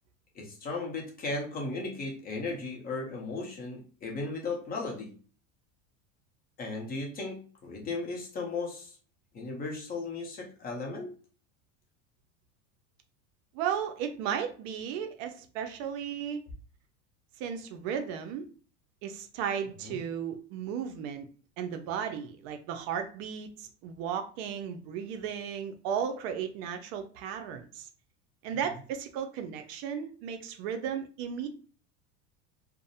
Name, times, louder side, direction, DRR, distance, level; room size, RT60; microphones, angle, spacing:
voice 1, 0.3-5.1 6.6-9.0 9.3-11.1 19.8-20.0, left 3 dB, 25° left, 0 dB, 0.6 m, -36 dB
voice 2, 13.5-16.4 17.4-18.5 19.0-21.3 21.6-27.9 28.4-31.5, right 8 dB, 60° right, 6 dB, 0.5 m, -35 dB
2.5 x 2.0 x 2.6 m, 0.40 s
supercardioid pair, 135°, 38 cm